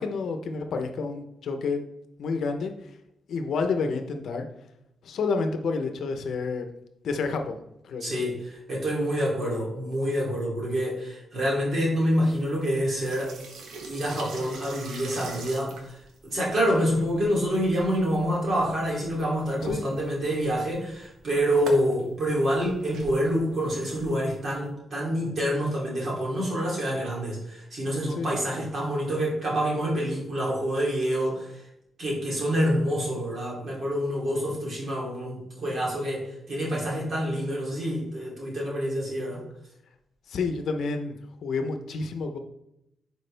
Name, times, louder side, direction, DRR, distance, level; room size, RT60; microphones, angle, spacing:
voice 1, 0.0-1.8 2.2-2.7 3.3-4.4 5.0-6.7 7.0-8.1 19.6-19.8 28.2-28.3 40.3-41.2 41.4-42.4, left 4 dB, 65° left, 6 dB, 0.9 m, -29 dB
voice 2, 8.0-13.4 13.8-31.7 32.0-39.4, equal, 40° right, -4 dB, 3.0 m, -27 dB
sound 1, 12.2-24.7, right 3 dB, 85° right, 1.4 m, -43 dB
11.0 x 4.7 x 3.4 m, 0.83 s
wide cardioid pair, 170°, 0 cm